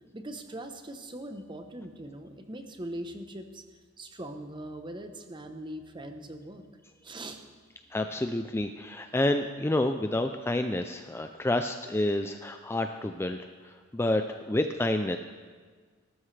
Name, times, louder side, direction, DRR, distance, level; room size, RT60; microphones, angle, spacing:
voice 1, 0.1-3.6 4.0-6.6 7.0-7.4, right 1 dB, 20° right, 6 dB, 0.9 m, -41 dB
voice 2, 7.9-15.2, left 1 dB, 10° left, 7 dB, 0.3 m, -29 dB
19.5 x 12.5 x 3.3 m, 1.5 s
head